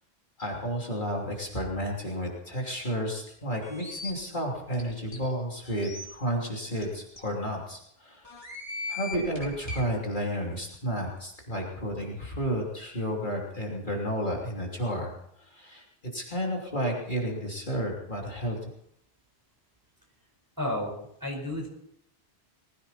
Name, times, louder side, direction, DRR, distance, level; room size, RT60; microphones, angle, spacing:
voice 1, 0.4-8.2 8.9-15.1 15.4-15.8 16.1-18.6, equal, 45° left, -2 dB, 3.3 m, -32 dB
sound 1, 3.6-4.1 4.7-4.8 5.1-5.2 5.6-6.0 6.8-6.9 7.2-7.3 8.2-9.8, left 3 dB, 20° left, 4.0 m, -38 dB
voice 2, 20.6-21.7, left 1 dB, 15° right, 0 dB, 4.8 m, -32 dB
20.5 x 16.0 x 4.2 m, 0.72 s
omnidirectional pair, 1.2 m